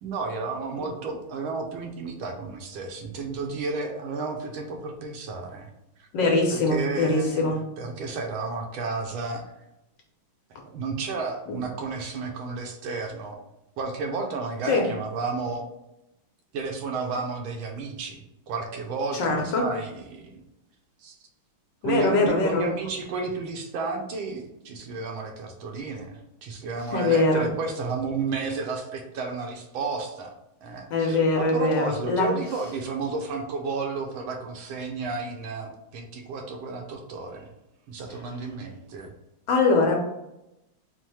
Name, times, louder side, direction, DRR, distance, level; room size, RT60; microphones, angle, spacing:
voice 1, 0.0-5.7 6.0-6.1 6.5-9.4 10.7-13.4 13.8-15.7 16.5-20.4 21.0-21.2 21.8-30.3 30.6-37.5 37.9-39.1, right 4 dB, 75° right, 3 dB, 1.5 m, -32 dB
voice 2, 6.1-7.6 11.5-11.6 14.6-14.9 19.1-19.7 21.8-22.7 26.9-27.5 30.9-32.3 39.5-40.0, left 3 dB, 70° left, 0 dB, 1.2 m, -22 dB
4.4 x 2.0 x 4.6 m, 0.88 s
omnidirectional pair, 2.3 m